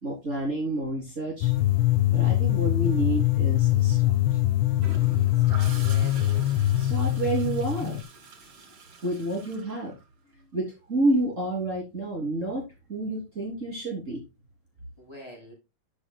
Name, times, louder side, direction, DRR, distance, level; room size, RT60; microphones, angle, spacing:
voice 1, 0.0-1.5 2.1-4.1 6.8-8.0 9.0-10.0 10.5-12.6 12.9-14.2, right 2 dB, 35° right, 3.5 m, -29 dB
sound 1, 1.4-8.0, left 14 dB, 80° left, 1.5 m, -23 dB
Gurgling / Toilet flush, 4.8-10.5 12.5-12.8, right 3 dB, 90° right, 2.9 m, -46 dB
voice 2, 5.3-6.6 15.0-15.5, equal, 10° left, 6.8 m, -44 dB
11.5 x 9.8 x 2.3 m
omnidirectional pair, 2.3 m